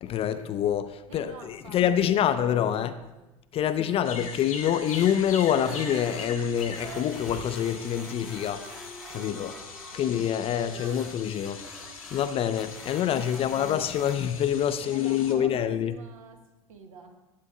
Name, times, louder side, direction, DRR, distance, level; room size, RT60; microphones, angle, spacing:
voice 1, 0.0-3.0 3.5-8.7 9.1-9.5 9.9-11.8 12.1-16.0, left 9 dB, 35° left, 0.4 m, -26 dB
voice 2, 1.1-3.3 3.6-4.1 9.2-9.5 9.9-10.1 13.0-13.8 14.7-16.4 16.7-17.2, right 5 dB, 75° right, 1.0 m, -48 dB
sound 1, 4.0-15.3, left 5 dB, 80° left, 1.0 m, -42 dB
sound 2, 4.9-14.2, equal, ahead, 0.8 m, -49 dB
Female singing, 5.4-12.5 13.1-13.2, right 3 dB, 60° right, 1.5 m, -45 dB
11.5 x 8.4 x 2.4 m
figure-of-eight pair, 75°, 17 cm